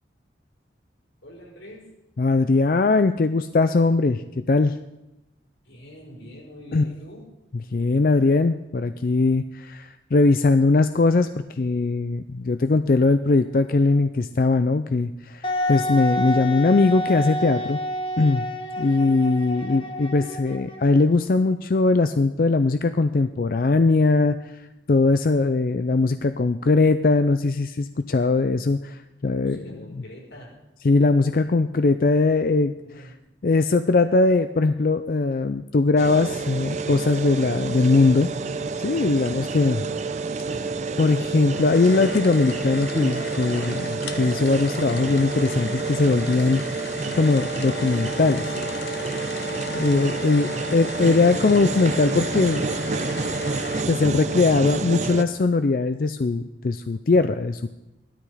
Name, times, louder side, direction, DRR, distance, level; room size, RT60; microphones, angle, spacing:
voice 1, 1.2-1.9 5.6-7.3 19.5-19.9 29.3-30.6 31.3-31.5 32.8-33.1 50.4-50.8, equal, 85° left, -3 dB, 5.5 m, -45 dB
voice 2, 2.2-4.7 6.7-6.8 7.7-17.8 18.2-18.5 18.8-24.5 24.9-29.6 30.8-32.7 33.0-33.1 33.4-38.3 38.8-39.8 40.5-40.7 41.0-46.6 47.2-48.5 49.7-52.6 53.9-57.7, left 3 dB, 50° left, 10 dB, 0.4 m, -20 dB
Wind instrument woodwind instrument, 15.4-21.0, left 1 dB, 30° left, 1.2 m, -29 dB
sound 1, 36.0-55.2, right 4 dB, 40° right, 0.7 m, -29 dB
sound 2, 41.5-53.9, left 3 dB, 70° left, 1.2 m, -36 dB
16.0 x 12.5 x 4.9 m, 0.97 s
head